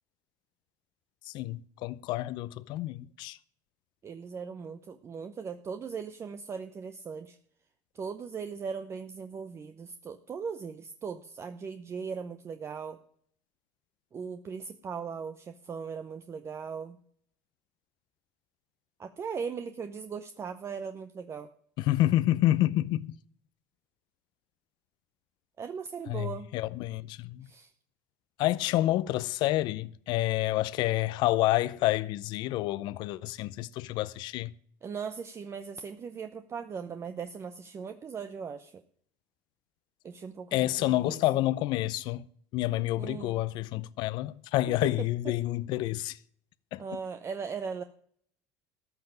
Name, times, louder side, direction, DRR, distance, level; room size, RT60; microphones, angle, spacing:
voice 1, 1.3-3.4 21.8-23.2 26.1-27.5 28.4-34.5 40.5-42.2 42.5-46.2 46.7-46.8, left 15 dB, 65° left, 0.6 m, -28 dB
voice 2, 4.0-7.4 7.9-13.0 14.1-17.0 19.0-21.5 25.6-26.5 27.4-27.7 34.8-38.8 40.0-41.2 43.0-43.4 44.8-45.1 46.8-47.8, right 6 dB, 30° right, 0.8 m, -39 dB
14.0 x 5.9 x 8.9 m
supercardioid pair, 100°, 8 cm